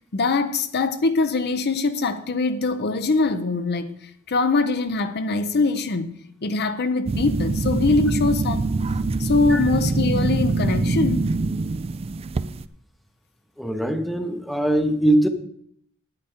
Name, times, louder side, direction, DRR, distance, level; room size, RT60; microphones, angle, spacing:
voice 1, 0.1-8.7 9.2-11.3, left 3 dB, 50° left, 0.7 m, -23 dB
sound 1, 7.1-12.6, right 3 dB, 30° right, 0.3 m, -24 dB
voice 2, 13.6-15.3, right 1 dB, ahead, 0.7 m, -21 dB
9.9 x 9.3 x 4.3 m
head